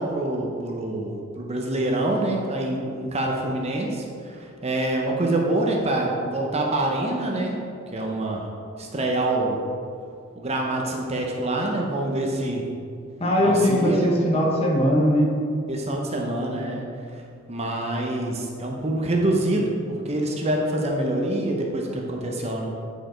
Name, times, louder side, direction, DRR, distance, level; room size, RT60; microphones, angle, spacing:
voice 1, 0.0-7.6 7.9-8.4 8.8-9.6 10.4-12.6 13.4-14.1 15.7-16.8 17.1-17.2 17.5-22.6, right 1 dB, 30° right, 0 dB, 0.8 m, -26 dB
voice 2, 13.2-15.3, equal, 30° left, -3 dB, 1.2 m, -20 dB
8.9 x 4.9 x 4.5 m, 2.3 s
head